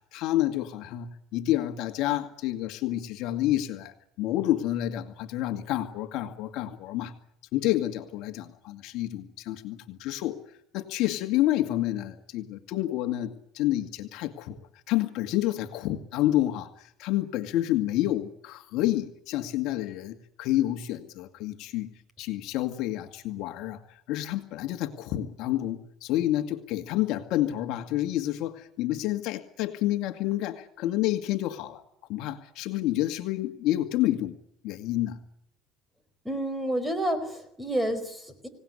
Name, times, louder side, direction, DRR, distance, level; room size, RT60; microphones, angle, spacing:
voice 1, 0.0-7.1 7.5-10.4 10.7-14.6 14.9-21.9 22.2-23.8 24.1-31.8 32.1-34.4 34.6-35.2, left 14 dB, 60° left, 7 dB, 2.1 m, -29 dB
voice 2, 36.2-38.5, right 1 dB, 5° right, 11 dB, 4.6 m, -29 dB
26.0 x 18.5 x 9.9 m, 0.74 s
cardioid pair, 140°, 0 cm